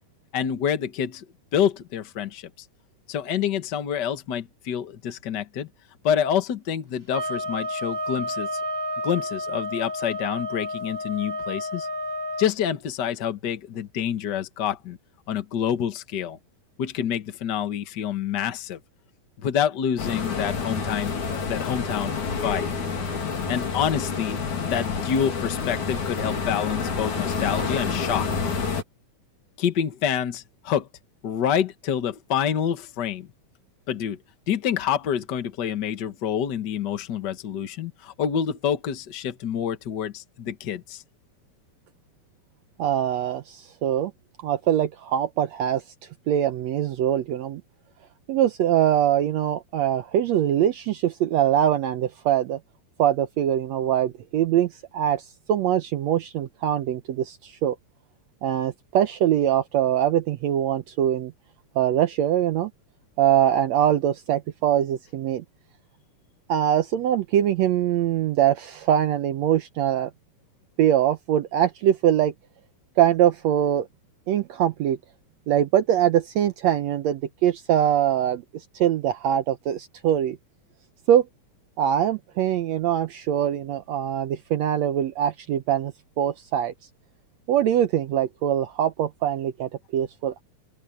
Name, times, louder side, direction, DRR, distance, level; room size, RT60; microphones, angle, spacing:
voice 1, 0.3-1.2 1.5-2.5 3.1-5.7 6.0-8.6 9.0-11.9 12.4-15.0 15.3-16.4 16.8-18.8 19.4-22.7 23.5-24.4 24.7-28.3 29.6-30.9 31.2-33.3 33.9-34.2 34.5-41.0, left 9 dB, 85° left, 0.9 m, -27 dB
sound 1, 7.1-12.5, left 1 dB, 25° right, 1.3 m, -31 dB
sound 2, 20.0-28.8, left 5 dB, 60° left, 4.5 m, -28 dB
voice 2, 42.8-44.1 44.4-45.8 46.3-47.6 48.3-52.6 53.0-57.8 58.4-61.3 61.7-62.7 63.2-65.4 66.5-70.1 70.8-72.3 73.0-73.9 74.3-75.0 75.5-80.4 81.1-81.3 81.8-86.7 87.5-90.4, right 10 dB, 80° right, 1.5 m, -23 dB
open air
omnidirectional pair, 4.1 m